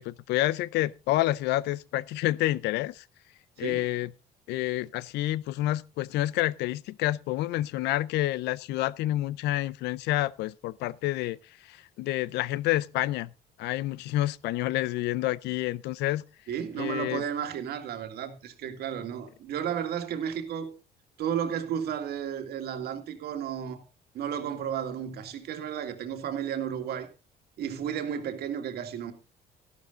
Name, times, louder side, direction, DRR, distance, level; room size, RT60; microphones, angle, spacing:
voice 1, 0.0-3.0 3.6-4.1 4.5-11.4 11.7-13.3 13.6-16.2 16.8-17.2, left 16 dB, 85° left, 0.6 m, -28 dB
voice 2, 3.6-3.9 16.5-20.7 21.2-23.8 24.1-27.1 27.6-29.1, right 8 dB, 70° right, 2.2 m, -33 dB
12.5 x 12.0 x 3.9 m
cardioid pair, 110°, 17 cm